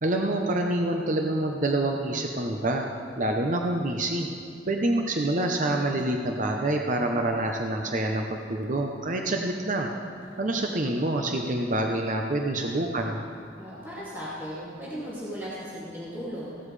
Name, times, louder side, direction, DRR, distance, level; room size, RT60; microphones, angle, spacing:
voice 1, 0.0-2.8 3.2-4.3 4.7-9.9 10.4-13.3, right 1 dB, 45° right, 2 dB, 0.8 m, -27 dB
voice 2, 10.2-10.9 13.5-16.6, equal, 15° right, -10 dB, 2.6 m, -37 dB
16.5 x 12.5 x 3.3 m, 2.5 s
head